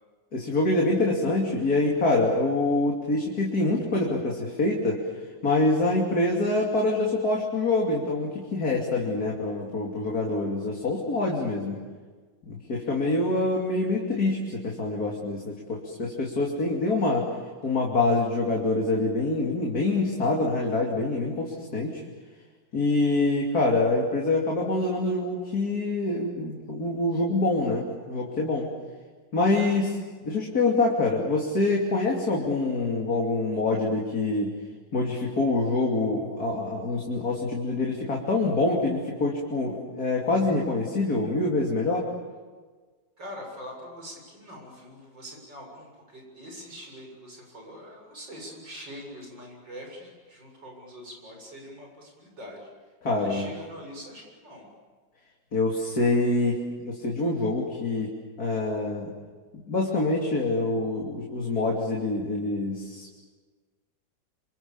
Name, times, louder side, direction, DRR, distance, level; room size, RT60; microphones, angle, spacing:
voice 1, 0.3-5.0 5.4-11.8 12.5-17.3 17.6-22.0 22.7-28.7 29.3-29.9 30.2-34.5 34.9-42.1 53.0-53.5 55.5-56.6 56.8-58.1 58.4-59.1 59.6-63.1, left 2 dB, 50° left, -2 dB, 3.5 m, -25 dB
voice 2, 43.2-52.7 53.2-54.7, equal, 70° right, 1 dB, 8.1 m, -43 dB
28.0 x 27.0 x 7.3 m, 1.4 s
omnidirectional pair, 2.0 m